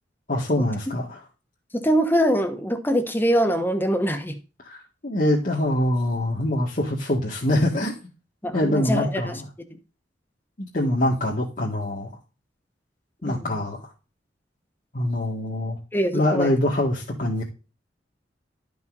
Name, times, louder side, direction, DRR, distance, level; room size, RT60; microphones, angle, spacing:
voice 1, 0.3-1.2 4.6-4.8 5.0-7.9 8.5-9.4 10.6-12.1 13.2-13.9 14.9-15.8 16.1-17.4, left 1 dB, 50° left, 1.9 m, -24 dB
voice 2, 1.7-4.4 8.4-9.4 13.3-13.5 15.9-16.5, equal, 10° left, 1.2 m, -23 dB
12.5 x 5.5 x 4.0 m
head